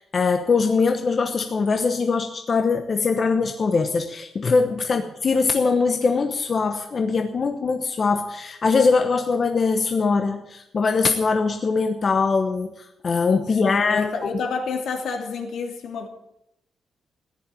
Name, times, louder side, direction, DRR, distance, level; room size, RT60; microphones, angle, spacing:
voice 1, 0.0-14.1, left 4 dB, 35° left, 6 dB, 1.0 m, -22 dB
voice 2, 13.7-16.1, left 4 dB, 70° left, 3 dB, 2.8 m, -29 dB
15.0 x 10.5 x 7.6 m, 0.82 s
wide cardioid pair, 150°, 0 cm